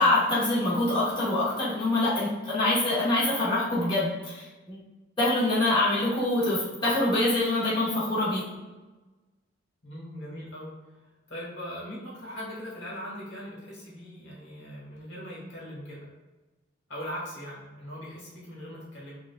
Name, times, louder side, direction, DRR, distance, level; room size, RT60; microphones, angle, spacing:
voice 1, 0.0-4.8 5.2-8.4, left 2 dB, 25° left, -10 dB, 1.3 m, -25 dB
voice 2, 9.8-10.7 11.3-16.1 16.9-19.2, equal, 65° left, -5 dB, 1.5 m, -40 dB
6.0 x 2.5 x 2.3 m, 1.2 s
head